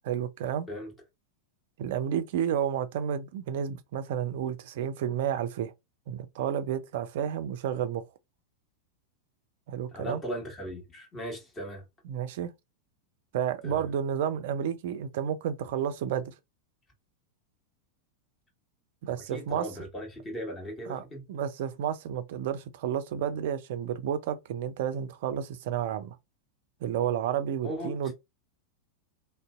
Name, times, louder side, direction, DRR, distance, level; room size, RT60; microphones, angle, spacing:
voice 1, 0.1-0.7 1.8-5.7 6.1-8.0 9.7-10.2 12.1-12.5 13.3-16.3 19.0-19.7 20.9-26.2 26.8-28.1, right 9 dB, 55° right, 0.3 m, -31 dB
voice 2, 9.9-11.8 13.6-13.8 19.3-21.2 27.6-28.1, equal, 20° left, 1.3 m, -38 dB
2.5 x 2.1 x 2.3 m
figure-of-eight pair, 90°, 0 cm